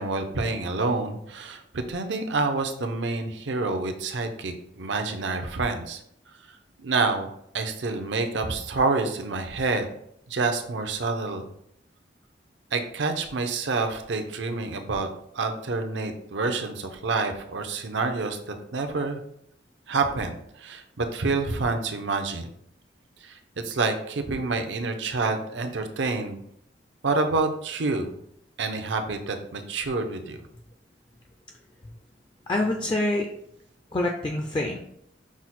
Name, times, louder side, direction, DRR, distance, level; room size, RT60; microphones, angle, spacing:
voice 1, 0.0-6.0 6.8-9.9 10.3-11.5 12.7-15.1 15.3-19.2 19.9-22.5 23.2-23.4 23.6-26.4 27.0-28.1 28.6-30.4, right 3 dB, 75° right, 5 dB, 0.6 m, -28 dB
voice 2, 32.5-33.3 33.9-34.8, left 2 dB, 25° left, 2 dB, 0.3 m, -26 dB
6.0 x 2.1 x 4.1 m, 0.72 s
head